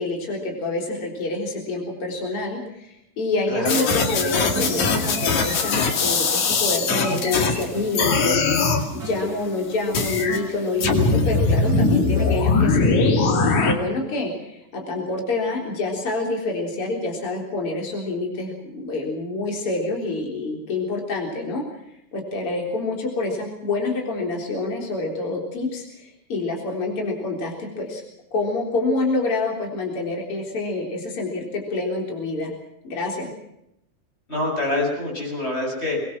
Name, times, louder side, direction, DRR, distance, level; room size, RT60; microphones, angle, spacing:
voice 1, 0.0-21.6 22.1-28.0 28.3-32.5 32.8-33.3, left 2 dB, 45° left, 1 dB, 4.7 m, -27 dB
voice 2, 3.5-3.8 34.3-36.0, left 2 dB, 20° left, 0 dB, 8.1 m, -26 dB
sound 1, 3.7-7.6 7.9-8.8 9.9-10.4 10.8-13.7, left 4 dB, 75° left, 3.7 m, -21 dB
sound 2, 3.8-13.5, right 4 dB, 30° right, 2.9 m, -36 dB
24.5 x 20.0 x 6.1 m, 0.81 s
omnidirectional pair, 3.4 m